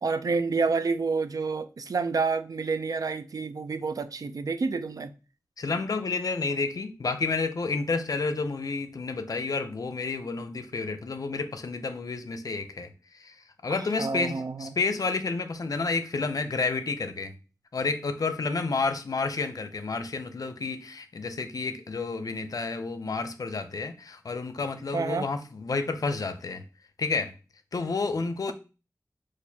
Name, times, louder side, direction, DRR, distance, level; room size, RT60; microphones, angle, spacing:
voice 1, 0.0-5.1 14.0-14.7 24.9-25.3, right 4 dB, 70° right, 0.4 m, -28 dB
voice 2, 5.6-12.9 13.2-13.3 13.6-17.3 17.7-26.6 27.0-27.3 27.7-28.5, left 4 dB, 70° left, 0.5 m, -30 dB
6.1 x 2.5 x 2.8 m
wide cardioid pair, 85°, 6 cm